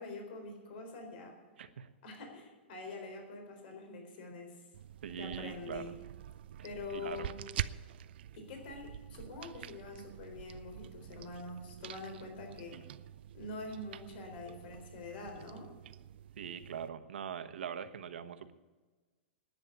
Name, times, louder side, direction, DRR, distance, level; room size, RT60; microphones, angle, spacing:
voice 1, 0.0-1.3 2.0-4.6 5.2-6.0 6.6-7.3 8.3-12.8 13.3-15.7, left 3 dB, 60° left, 3 dB, 4.1 m, -45 dB
voice 2, 1.6-1.9 5.0-5.9 6.9-7.3 12.7-12.9 16.4-18.5, right 8 dB, 80° right, 9 dB, 1.2 m, -42 dB
sound 1, 4.7-16.9, right 11 dB, 65° right, 0.5 m, -46 dB
11.0 x 9.5 x 9.6 m, 1.3 s
hypercardioid pair, 135°, 6 cm